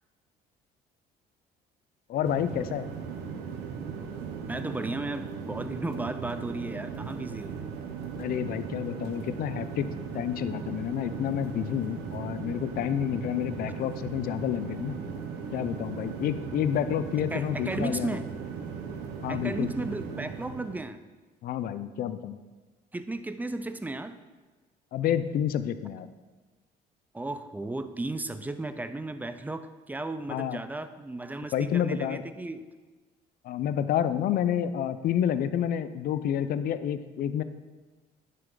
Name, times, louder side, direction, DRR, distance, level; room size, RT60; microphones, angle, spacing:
voice 1, 2.1-2.9 8.2-9.9 10.1-15.0 15.5-18.1 19.2-19.7 21.4-22.4 24.9-26.1 30.3-30.6 31.5-32.2 33.4-37.4, left 10 dB, 60° left, 12 dB, 0.5 m, -29 dB
Inflight Landing Warning, 2.2-20.8, right 6 dB, 90° right, 1.0 m, -37 dB
voice 2, 4.5-7.6 17.3-18.3 19.3-21.0 22.9-24.2 27.1-32.6, right 2 dB, 10° right, 11 dB, 0.5 m, -34 dB
10.5 x 6.7 x 3.9 m, 1.3 s
cardioid pair, 110°, 17 cm